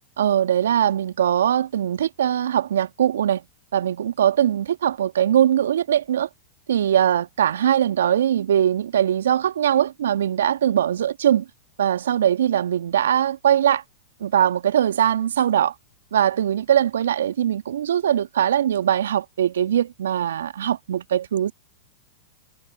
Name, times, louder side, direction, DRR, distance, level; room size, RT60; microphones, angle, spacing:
voice 1, 0.2-3.4 3.7-6.3 6.7-11.5 11.8-13.8 14.2-15.7 16.1-21.5, right 10 dB, 70° right, 1.4 m, -21 dB
hypercardioid pair, 100°, 0 cm